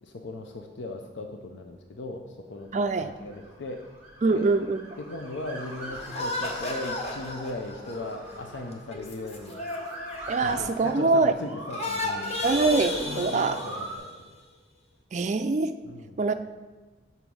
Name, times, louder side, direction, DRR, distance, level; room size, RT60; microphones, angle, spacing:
voice 1, 0.0-3.8 4.3-4.5 5.0-9.6 10.4-12.3 13.0-14.3 15.8-16.2, left 2 dB, 80° left, 3 dB, 0.6 m, -38 dB
voice 2, 2.7-3.1 4.2-4.8 10.3-11.3 12.4-13.6 15.1-15.8 16.2-16.3, right 3 dB, 40° right, 9 dB, 0.3 m, -24 dB
Motor vehicle (road) / Siren, 2.8-14.0, right 1 dB, 10° right, 2.1 m, -43 dB
sound 1, 6.0-11.4 11.7-14.2, left 2 dB, 35° left, 0.8 m, -34 dB
7.1 x 4.1 x 6.1 m, 1.3 s
head